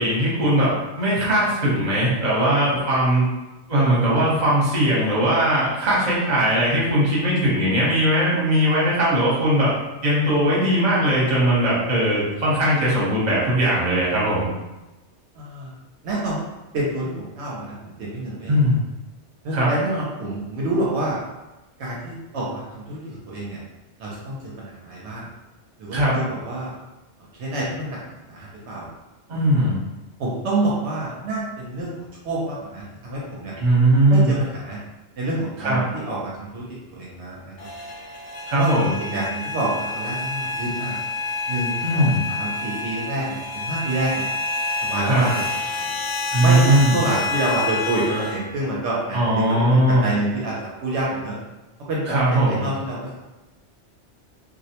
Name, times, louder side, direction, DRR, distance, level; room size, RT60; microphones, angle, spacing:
voice 1, 0.0-3.2 3.7-9.7 10.0-14.5 18.5-18.8 19.5-19.7 25.9-26.2 29.3-29.8 33.6-34.3 35.6-35.8 38.5-38.9 41.8-42.2 45.1-45.3 46.3-46.9 49.1-50.0 52.1-52.6, right 1 dB, 40° right, -7 dB, 0.9 m, -19 dB
voice 2, 15.4-15.7 16.0-16.4 16.7-18.6 19.4-21.2 21.8-23.6 24.0-25.3 25.8-26.7 27.3-28.0 28.3-28.9 30.2-33.5 34.1-34.8 35.2-36.6 36.9-37.5 38.6-38.7 39.0-41.0 41.5-44.3 44.8-45.5 46.4-51.4 51.9-53.2, right 2 dB, 75° right, -5 dB, 0.8 m, -27 dB
sound 1, 37.6-48.4, left 3 dB, 80° left, 0.9 m, -28 dB
2.3 x 2.0 x 2.8 m, 1.0 s
omnidirectional pair, 1.2 m